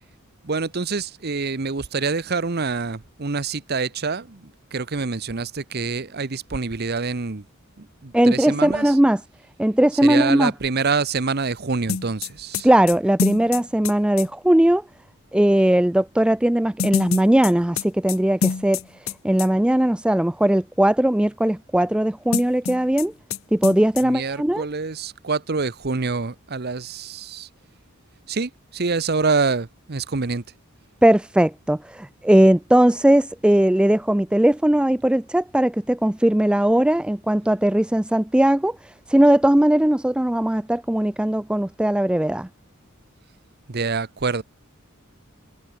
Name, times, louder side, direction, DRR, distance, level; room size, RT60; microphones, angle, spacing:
voice 1, 0.4-7.4 7.8-9.0 9.9-12.7 24.0-27.5 28.3-30.4 43.7-44.4, right 4 dB, 50° right, 1.0 m, -26 dB
voice 2, 8.1-9.2 9.6-10.5 12.6-14.8 15.3-18.8 19.2-23.1 23.5-24.7 31.0-38.8 39.1-42.5, right 1 dB, 5° right, 0.3 m, -19 dB
sound 1, 11.9-14.3 16.8-19.1 19.4-19.5 22.3-23.1 23.3-23.4 23.6-24.0, left 6 dB, 75° left, 0.7 m, -26 dB
head